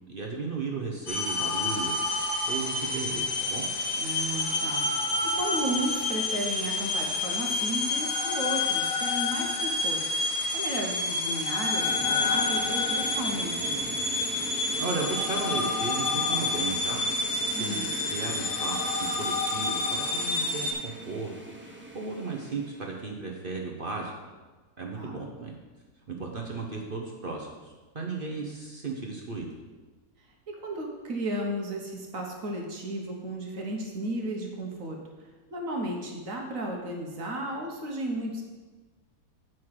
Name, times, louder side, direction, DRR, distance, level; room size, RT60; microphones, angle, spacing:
voice 1, 0.1-3.7 14.7-17.0 17.6-24.1 24.8-25.5 26.1-29.5, right 3 dB, 40° right, -1 dB, 1.0 m, -35 dB
sound 1, 1.1-20.7, left 3 dB, 65° left, 1.7 m, -29 dB
voice 2, 4.0-10.0 10.5-14.0 17.5-18.0 24.9-25.2 30.5-38.4, right 1 dB, 60° right, 0 dB, 1.4 m, -34 dB
sound 2, 11.8-23.1, right 1 dB, 10° right, 0.7 m, -41 dB
9.1 x 6.1 x 4.7 m, 1.3 s
omnidirectional pair, 1.6 m